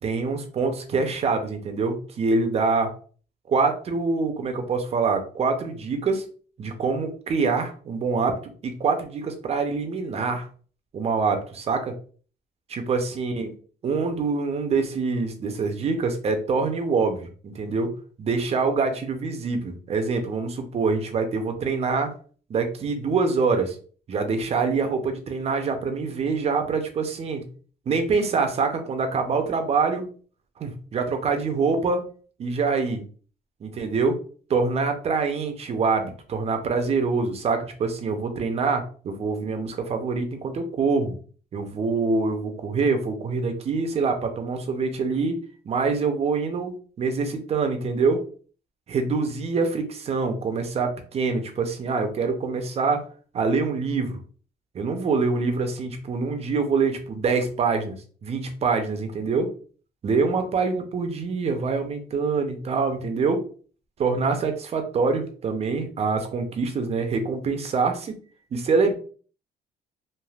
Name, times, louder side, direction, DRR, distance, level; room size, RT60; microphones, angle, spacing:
voice 1, 0.0-2.9 3.5-6.2 6.6-10.5 10.9-11.9 12.7-13.5 13.8-17.9 18.2-22.1 22.5-23.8 24.1-27.5 27.9-30.0 30.6-32.0 32.4-33.0 33.6-34.2 34.5-41.2 41.5-45.4 45.7-46.7 47.0-48.2 48.9-53.0 53.3-54.2 54.7-59.5 60.0-63.4 64.0-68.1 68.5-68.9, right 4 dB, 40° right, 6 dB, 0.6 m, -25 dB
3.3 x 2.4 x 2.3 m, 0.41 s
cardioid pair, 110°, 17 cm